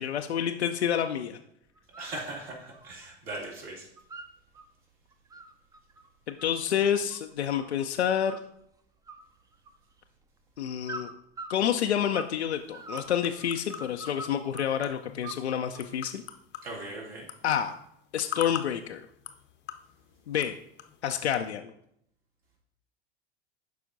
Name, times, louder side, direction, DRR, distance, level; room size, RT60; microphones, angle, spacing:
voice 1, 0.0-1.4 6.3-8.4 10.6-11.1 11.5-16.2 17.4-17.7 18.1-19.0 20.3-20.6 21.0-21.7, left 9 dB, 85° left, 5 dB, 0.5 m, -28 dB
sound 1, 1.7-2.2 2.5-3.5 3.7-4.7 5.1-7.9 8.3-8.7 9.1-10.0 10.8-12.4 12.7-14.8 15.2-16.0, right 2 dB, 10° right, 0.4 m, -44 dB
voice 2, 1.9-3.9 16.6-17.3, right 2 dB, 70° right, -3 dB, 3.0 m, -39 dB
sound 2, 12.1-21.5, left 11 dB, 35° left, 0.6 m, -45 dB
11.5 x 4.9 x 2.6 m, 0.75 s
figure-of-eight pair, 80°, 32 cm